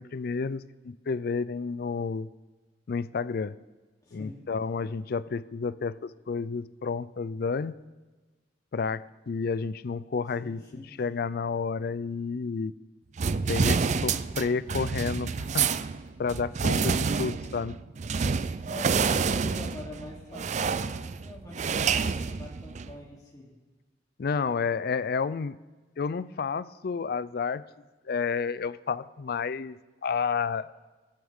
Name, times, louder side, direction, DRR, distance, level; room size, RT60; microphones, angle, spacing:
voice 1, 0.0-2.3 2.9-3.6 4.1-7.8 8.7-10.6 11.0-12.8 13.5-15.7 16.2-16.9 17.2-17.8 24.2-25.6 26.0-27.6 28.1-30.7, left 5 dB, 55° left, 17 dB, 0.4 m, -30 dB
voice 2, 4.0-4.4 10.4-10.9 18.7-23.5, left 1 dB, 20° left, -4 dB, 3.1 m, -44 dB
sound 1, 13.2-23.0, right 5 dB, 40° right, 0.4 m, -28 dB
16.0 x 15.0 x 3.7 m, 1.3 s
head